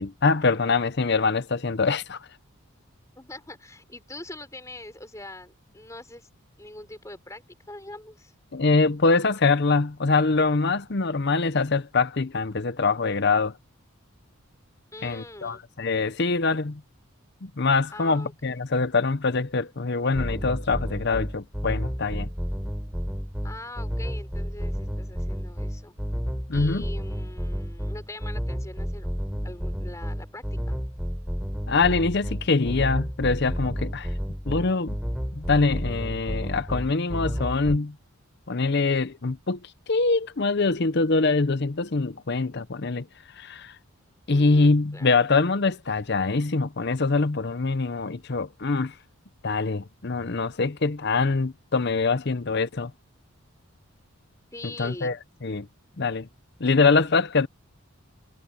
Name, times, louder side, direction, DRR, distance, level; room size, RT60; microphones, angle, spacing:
voice 1, 0.0-2.2 8.5-13.6 15.0-16.8 17.4-22.3 26.5-26.9 31.7-34.1 34.5-35.0 35.4-38.0 38.5-43.1 43.4-43.8 44.3-49.0 49.4-52.9 54.6-55.2 55.4-55.7 56.0-56.3 56.6-57.5, left 3 dB, 50° left, 0.7 m, -24 dB
voice 2, 3.2-6.3 6.6-8.3 14.9-15.6 17.9-18.6 23.4-25.9 26.5-29.1 29.4-30.8 44.3-45.1 54.5-55.2, left 2 dB, 15° left, 3.7 m, -43 dB
sound 1, 20.1-37.8, equal, 5° right, 5.7 m, -31 dB
head